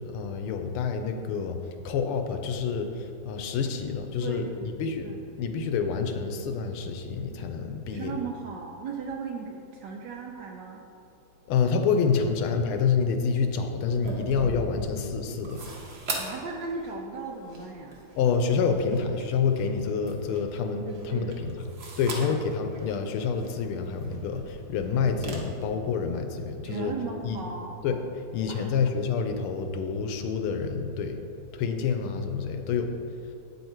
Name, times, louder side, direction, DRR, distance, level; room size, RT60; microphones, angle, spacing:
voice 1, 0.0-1.6 1.8-5.1 5.4-8.1 11.5-15.6 18.2-21.5 22.0-26.9 27.2-27.4 27.8-28.0 28.3-31.2 31.5-32.9, left 5 dB, 80° left, 6 dB, 1.5 m, -28 dB
voice 2, 4.2-4.7 5.0-5.2 7.9-10.8 16.1-18.0 20.9-21.4 22.2-22.4 26.6-27.8 28.5-28.7, right 5 dB, 75° right, 0 dB, 1.0 m, -37 dB
sound 1, 13.8-25.3, right 2 dB, 50° right, 0.7 m, -41 dB
8.5 x 5.5 x 4.5 m, 2.7 s
omnidirectional pair, 2.4 m